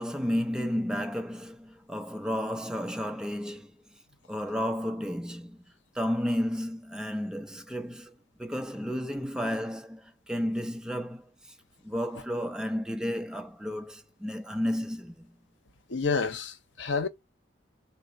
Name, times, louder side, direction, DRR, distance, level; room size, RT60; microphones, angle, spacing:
voice 1, 0.0-4.0 4.3-5.6 5.9-11.5 11.8-15.3, equal, 5° right, 0.5 m, -32 dB
voice 2, 15.9-17.1, left 5 dB, 80° left, 0.7 m, -29 dB
4.1 x 2.0 x 3.9 m
head